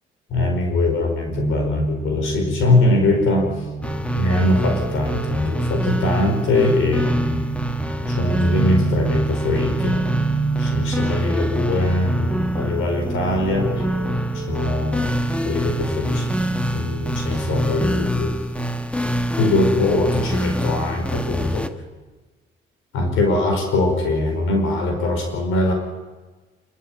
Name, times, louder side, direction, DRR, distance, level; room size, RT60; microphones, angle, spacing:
voice 1, 0.3-3.5 4.1-7.5 8.1-10.0 10.6-13.7 14.3-15.2 15.4-16.2 16.7-18.3 19.4-21.7 22.9-25.7, left 2 dB, 85° left, 4 dB, 5.1 m, -21 dB
sound 1, 1.3-17.9, right 5 dB, 60° right, 2.3 m, -30 dB
sound 2, 3.8-21.7, equal, 5° left, 1.4 m, -25 dB
26.5 x 13.5 x 9.2 m, 1.3 s
cardioid pair, 90°, 20 cm